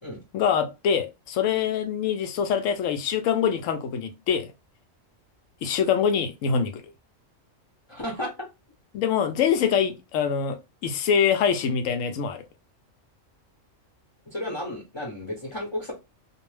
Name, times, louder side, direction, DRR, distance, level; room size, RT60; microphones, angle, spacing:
voice 1, 0.3-4.5 5.6-6.8 8.9-12.4, left 7 dB, 80° left, 0.9 m, -24 dB
voice 2, 7.9-8.5 14.3-15.9, left 1 dB, 30° left, 0.6 m, -33 dB
2.5 x 2.1 x 3.1 m
omnidirectional pair, 1.4 m